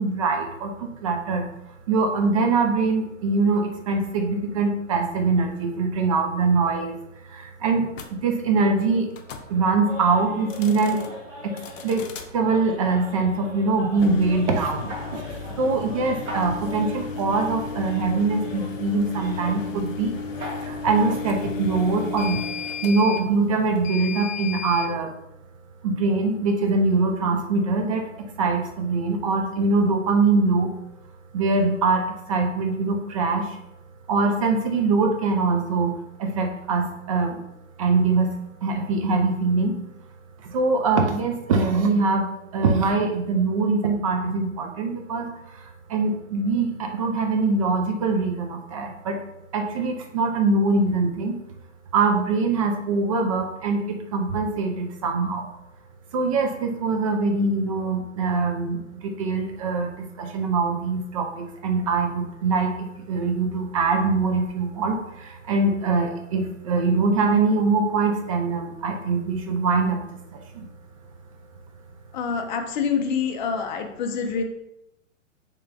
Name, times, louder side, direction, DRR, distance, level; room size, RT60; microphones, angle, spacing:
voice 1, 0.0-1.5 1.9-9.1 9.5-11.0 11.4-12.1 12.3-20.1 20.6-22.5 22.8-25.1 25.8-30.7 31.3-33.6 34.1-37.4 37.8-38.3 38.6-39.8 40.4-49.2 49.5-51.4 51.9-55.5 56.1-70.7, right 3 dB, 30° right, 3 dB, 0.4 m, -23 dB
sound 1, 7.9-8.1 9.1-9.5 10.4-11.1 11.6-12.3 13.9-24.9, left 5 dB, 75° left, 0.6 m, -34 dB
sound 2, 9.2-21.4, left 1 dB, 85° right, 1.3 m, -41 dB
voice 2, 72.1-74.4, left 6 dB, 35° left, 5 dB, 0.5 m, -26 dB
3.3 x 3.0 x 3.2 m, 0.84 s
hypercardioid pair, 125°, 39 cm